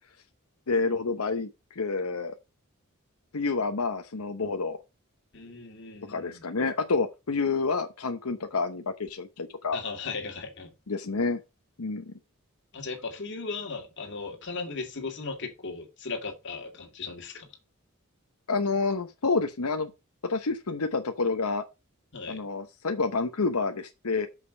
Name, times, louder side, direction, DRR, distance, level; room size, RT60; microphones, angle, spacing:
voice 1, 0.7-2.4 3.3-4.8 6.1-9.8 10.9-11.4 11.8-12.1 18.5-19.9 20.2-21.6 22.3-24.3, left 4 dB, 85° left, 0.9 m, -28 dB
voice 2, 5.3-6.4 9.7-10.8 12.7-17.5 22.1-22.5, left 4 dB, 55° left, 2.2 m, -37 dB
6.7 x 5.3 x 6.4 m
head